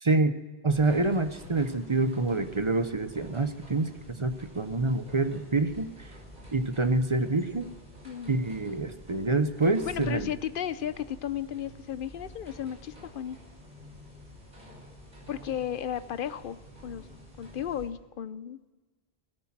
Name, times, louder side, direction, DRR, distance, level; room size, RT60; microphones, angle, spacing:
voice 1, 0.0-0.3 0.6-5.9 6.5-7.7 8.3-10.3, right 3 dB, 30° right, 10 dB, 0.8 m, -27 dB
sound 1, 0.7-17.9, equal, 50° right, 6.0 m, -49 dB
voice 2, 8.0-8.4 9.9-13.4 15.3-17.0 17.4-18.7, left 10 dB, 60° left, 14 dB, 0.8 m, -34 dB
17.5 x 13.5 x 5.9 m, 1.3 s
omnidirectional pair, 1.1 m